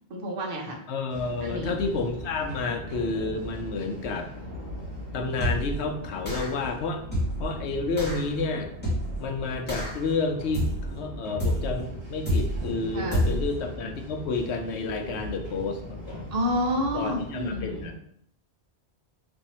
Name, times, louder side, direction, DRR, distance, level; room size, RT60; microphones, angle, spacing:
voice 1, 0.1-0.8 1.4-1.7 12.9-13.3 16.3-17.9, equal, 60° right, 0 dB, 1.0 m, -29 dB
voice 2, 0.9-4.3 5.1-7.0 7.4-8.7 9.2-16.2 16.9-17.9, left 3 dB, 85° left, 5 dB, 0.9 m, -30 dB
sound 1, 1.1-17.9, left 1 dB, 75° right, 1.5 m, -39 dB
sound 2, 5.4-5.8 6.2-6.6 7.1-7.5 8.0-8.2 8.8-9.2 9.7-10.1 10.5-11.0 11.4-11.8 12.2-12.7 13.1-13.5, equal, 10° left, 1.2 m, -28 dB
3.5 x 2.7 x 4.1 m, 0.68 s
omnidirectional pair, 1.1 m